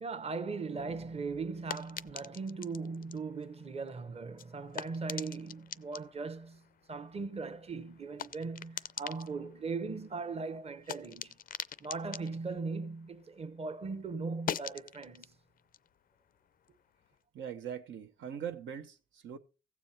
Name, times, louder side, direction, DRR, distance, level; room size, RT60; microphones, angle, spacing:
voice 1, 0.0-6.6 6.9-11.4 11.8-15.3, right 4 dB, 30° right, 1.0 m, -39 dB
sound 1, 0.8-13.6 13.9-17.1, left 9 dB, 45° left, 0.4 m, -46 dB
voice 2, 17.3-19.4, right 8 dB, 70° right, 0.9 m, -41 dB
15.5 x 7.2 x 4.3 m
cardioid pair, 90°, 20 cm